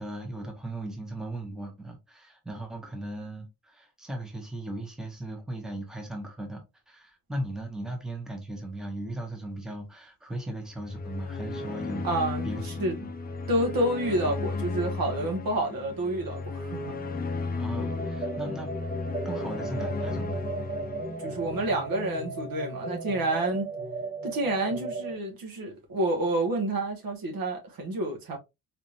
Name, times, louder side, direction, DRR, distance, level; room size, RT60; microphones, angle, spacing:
voice 1, 0.0-12.1 12.4-13.1 17.6-19.0 19.2-20.4, right 1 dB, ahead, 0.9 m, -37 dB
sound 1, 10.7-22.1, left 3 dB, 25° left, 0.5 m, -35 dB
voice 2, 12.0-13.0 13.5-17.3 21.2-23.7 24.2-28.4, right 1 dB, 75° right, 1.7 m, -29 dB
sound 2, 17.7-25.1, right 2 dB, 25° right, 1.3 m, -35 dB
4.2 x 3.3 x 2.6 m
wide cardioid pair, 175°, 35 cm